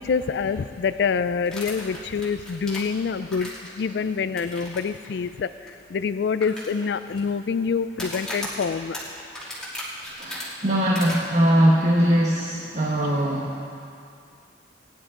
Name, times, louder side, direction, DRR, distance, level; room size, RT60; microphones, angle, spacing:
voice 1, 0.0-9.0, left 5 dB, 65° left, 12 dB, 0.3 m, -26 dB
sound 1, 1.5-3.8 4.4-4.8 5.0-5.1 5.7-5.8 6.4-7.2 7.9-10.4 10.9-11.1, left 1 dB, 5° left, 2.4 m, -35 dB
voice 2, 10.2-13.8, equal, 40° right, -4 dB, 1.2 m, -21 dB
20.0 x 10.5 x 3.8 m, 2.4 s
head